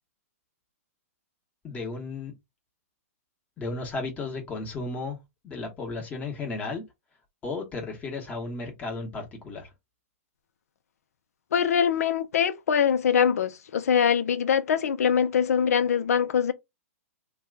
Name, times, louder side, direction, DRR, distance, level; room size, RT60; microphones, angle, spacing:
voice 1, 1.6-2.3 3.6-5.2 5.4-6.8 7.4-9.7, left 3 dB, 20° left, 1.0 m, -34 dB
voice 2, 11.5-16.5, left 7 dB, 80° left, 0.5 m, -23 dB
2.8 x 2.3 x 3.5 m
hypercardioid pair, 145°, 8 cm